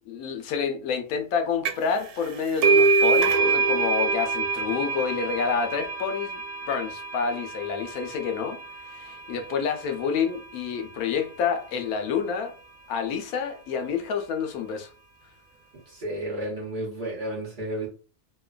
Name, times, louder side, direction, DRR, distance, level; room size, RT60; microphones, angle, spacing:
voice 1, 0.1-6.4 6.7-8.6 8.9-12.5 12.9-14.9, left 6 dB, 85° left, 1.1 m, -28 dB
sound 1, 1.7-2.0 2.2-9.5, right 4 dB, 85° right, 1.1 m, -25 dB
voice 2, 15.9-17.9, right 1 dB, 40° right, 0.8 m, -32 dB
2.9 x 2.1 x 2.3 m
omnidirectional pair, 1.5 m